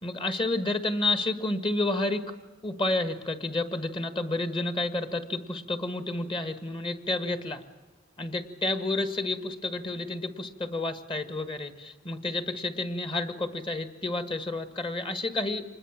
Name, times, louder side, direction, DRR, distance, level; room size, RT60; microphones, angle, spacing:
voice 1, 0.0-2.2 2.6-7.6 8.2-15.6, left 2 dB, 25° left, 9 dB, 1.6 m, -30 dB
26.0 x 21.0 x 7.4 m, 1.2 s
head